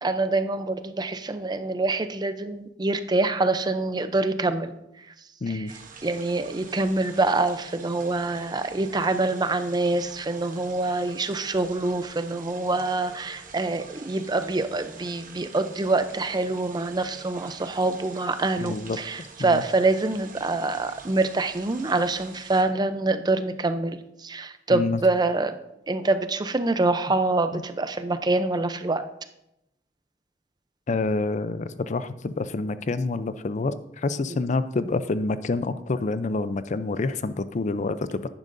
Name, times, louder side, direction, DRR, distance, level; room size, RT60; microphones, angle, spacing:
voice 1, 0.0-4.7 5.5-5.7 6.0-25.5 25.9-29.0, right 2 dB, 25° right, 10 dB, 0.5 m, -25 dB
voice 2, 5.4-5.7 18.6-19.6 24.7-25.0 27.5-27.6 30.9-38.3, left 3 dB, 40° left, 13 dB, 0.4 m, -28 dB
sound 1, 5.7-22.6, right 5 dB, 50° right, 1.2 m, -46 dB
10.5 x 9.9 x 2.6 m, 0.85 s
head